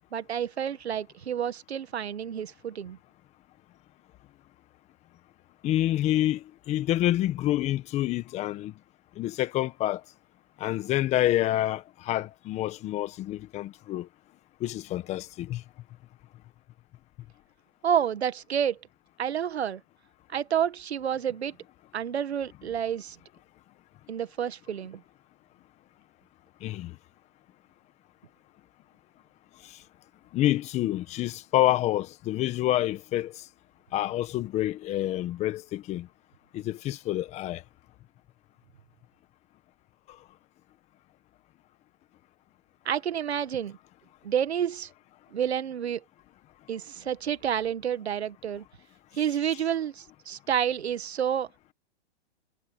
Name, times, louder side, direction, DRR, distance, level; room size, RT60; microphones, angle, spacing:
voice 1, 0.1-3.0 17.8-18.8 19.2-19.8 20.3-21.6 21.9-23.2 24.1-25.0 42.9-43.8 44.2-44.9 45.3-46.0 46.7-48.6 49.1-51.5, right 9 dB, 85° right, 1.8 m, -29 dB
voice 2, 5.6-8.7 9.2-10.0 10.6-14.1 14.6-15.6 26.6-26.9 30.3-33.4 33.9-36.1 36.5-37.6, left 14 dB, 20° left, 1.5 m, -27 dB
hypercardioid pair, 150°, 31 cm